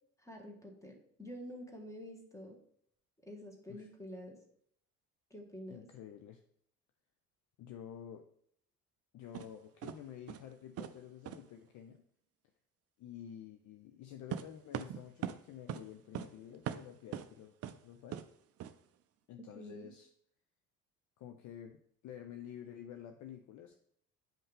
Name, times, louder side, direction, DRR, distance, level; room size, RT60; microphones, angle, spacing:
voice 1, 0.2-2.6 3.2-4.4 5.3-5.9 19.5-19.9, left 1 dB, 5° left, 2 dB, 1.9 m, -48 dB
voice 2, 5.7-6.4 7.6-8.3 9.1-12.0 13.0-17.6 17.8-18.2 19.3-20.1 21.2-23.8, left 9 dB, 40° left, 6 dB, 0.7 m, -50 dB
sound 1, 9.3-9.5 9.8-10.0 10.3-10.5 10.8-11.0 11.3-11.4 14.3-15.4 15.7-15.9 16.1-16.3 16.7-17.3 17.6-17.8 18.1-18.3 18.6-18.7, right 10 dB, 35° right, 0.6 m, -40 dB
8.9 x 5.4 x 3.5 m, 0.67 s
figure-of-eight pair, 55°, 46 cm